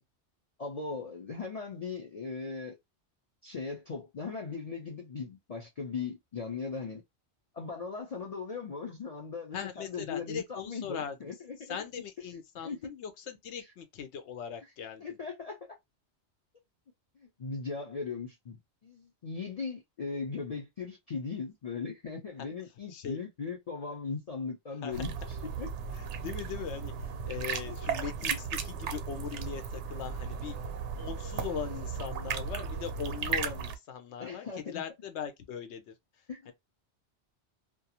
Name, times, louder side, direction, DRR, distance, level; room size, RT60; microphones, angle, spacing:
voice 1, 0.6-2.8 3.4-7.0 7.5-11.8 12.6-12.9 15.0-15.8 17.2-25.1 25.6-25.7 27.7-27.8 28.3-28.4 34.2-34.8 36.3-36.5, left 4 dB, 45° left, 0.5 m, -38 dB
voice 2, 9.5-11.3 11.7-15.2 22.9-23.2 24.8-25.0 25.9-30.6 31.0-35.9 36.5-36.6, left 8 dB, 80° left, 0.9 m, -40 dB
sound 1, 24.9-33.8, right 6 dB, 80° right, 0.9 m, -36 dB
2.4 x 2.3 x 2.8 m
omnidirectional pair, 1.2 m